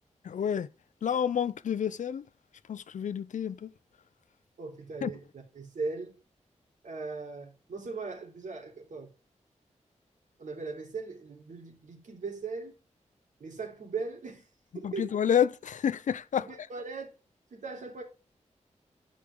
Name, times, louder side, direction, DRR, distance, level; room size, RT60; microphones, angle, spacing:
voice 1, 0.2-0.7 1.0-2.3 2.7-3.7 5.0-5.1 14.8-16.5, left 8 dB, 85° left, 0.5 m, -29 dB
voice 2, 4.6-6.2 6.8-9.1 10.4-12.7 13.4-14.5 14.7-15.1 16.3-17.1 17.5-18.0, right 4 dB, 90° right, 3.4 m, -39 dB
12.0 x 5.0 x 3.7 m
wide cardioid pair, 155°, 13 cm